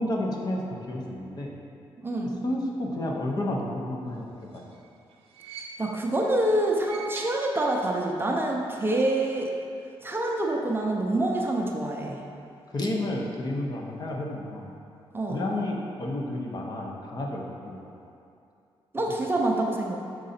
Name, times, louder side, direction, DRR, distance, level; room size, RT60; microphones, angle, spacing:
voice 1, 0.0-1.6 2.2-4.2 4.5-4.6 12.7-14.8 15.3-17.8, left 1 dB, 40° left, -1 dB, 0.8 m, -31 dB
voice 2, 2.0-2.4 5.8-9.5 10.0-12.2 15.1-15.4 18.9-20.0, right 1 dB, 20° right, 0 dB, 0.6 m, -26 dB
sound 1, 4.3-6.2 6.7-8.1 8.3-8.4 9.5-9.6, right 5 dB, 80° right, 0.6 m, -45 dB
6.5 x 3.8 x 4.2 m, 2.5 s
cardioid pair, 105°, 10 cm